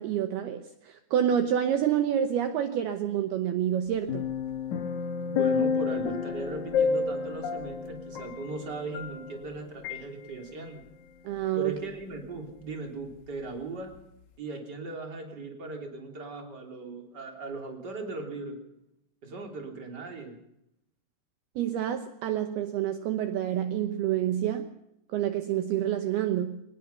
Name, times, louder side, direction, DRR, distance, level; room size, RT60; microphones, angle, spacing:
voice 1, 0.0-4.3 11.2-11.8 21.6-24.7 25.1-26.6, right 10 dB, 75° right, 8 dB, 2.3 m, -28 dB
sound 1, 4.1-9.5 9.8-10.0, left 5 dB, 70° left, 1.9 m, -30 dB
voice 2, 5.3-10.8 11.5-13.9 14.4-18.6 19.2-20.4, right 3 dB, 25° right, 3 dB, 3.1 m, -38 dB
23.5 x 19.5 x 5.7 m, 0.83 s
omnidirectional pair, 5.9 m